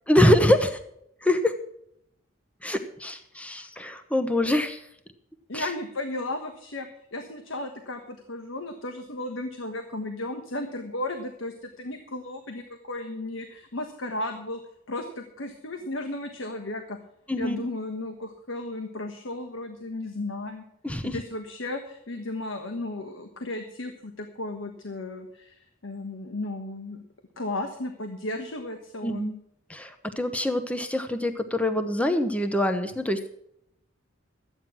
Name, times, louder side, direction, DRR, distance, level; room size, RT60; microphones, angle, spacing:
voice 1, 0.1-0.8 1.2-1.5 2.6-4.8 5.5-5.7 17.3-17.6 20.8-21.2 29.0-29.3 29.7-33.3, left 1 dB, 5° left, 8 dB, 0.8 m, -24 dB
voice 2, 5.5-14.6 14.9-17.0 17.4-20.6 21.0-27.0 27.4-29.3, left 2 dB, 85° left, 6 dB, 1.4 m, -34 dB
13.5 x 9.2 x 6.1 m, 0.74 s
head